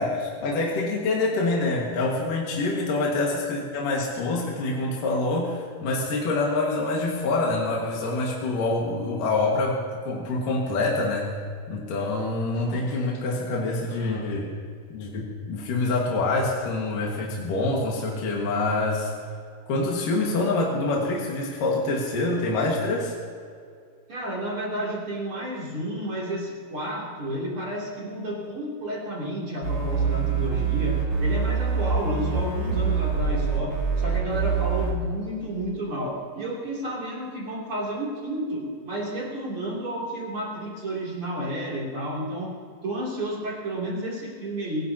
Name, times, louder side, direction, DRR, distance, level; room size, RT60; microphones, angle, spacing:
voice 1, 0.0-9.8 10.0-11.3 11.7-14.5 14.9-19.1 19.7-23.1, left 2 dB, 55° left, -3 dB, 2.8 m, -26 dB
voice 2, 13.7-14.5 24.1-42.6 42.8-44.9, right 1 dB, 35° right, -5 dB, 3.0 m, -31 dB
sound 1, 29.6-34.9, right 5 dB, 50° right, 5.4 m, -25 dB
25.5 x 17.5 x 2.9 m, 2.2 s
omnidirectional pair, 5.5 m